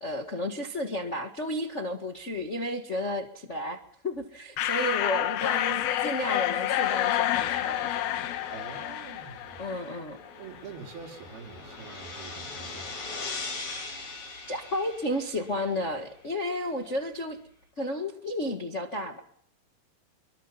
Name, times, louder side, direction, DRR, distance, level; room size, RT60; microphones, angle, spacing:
voice 1, 0.0-8.0 9.6-10.2 13.6-13.9 14.5-17.4 17.8-19.2, left 1 dB, 45° left, 3 dB, 0.9 m, -32 dB
sound 1, 4.6-10.1, left 12 dB, 85° left, 3.1 m, -28 dB
sound 2, 6.5-16.1, left 3 dB, 65° left, 6.6 m, -42 dB
voice 2, 8.5-9.7 10.4-14.2, right 5 dB, 90° right, 3 dB, 4.9 m, -46 dB
26.5 x 23.0 x 5.8 m, 0.65 s
omnidirectional pair, 4.2 m